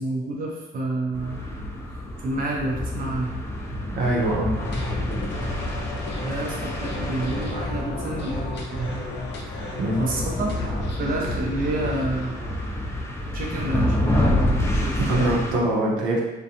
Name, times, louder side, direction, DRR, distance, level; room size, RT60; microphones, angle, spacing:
voice 1, 0.0-1.4 2.2-3.4 6.2-9.0 10.0-10.6 10.9-12.4 13.3-15.5, right 2 dB, 45° right, -3 dB, 0.6 m, -29 dB
sound 1, 1.1-15.5, left 1 dB, 15° left, 0.4 m, -28 dB
voice 2, 4.0-4.5 9.8-10.0 15.0-16.2, right 1 dB, 80° right, -4 dB, 0.7 m, -23 dB
sound 2, 4.5-12.9, left 3 dB, 60° left, 0.6 m, -36 dB
2.4 x 2.2 x 2.8 m, 1.0 s
cardioid pair, 90°, 20 cm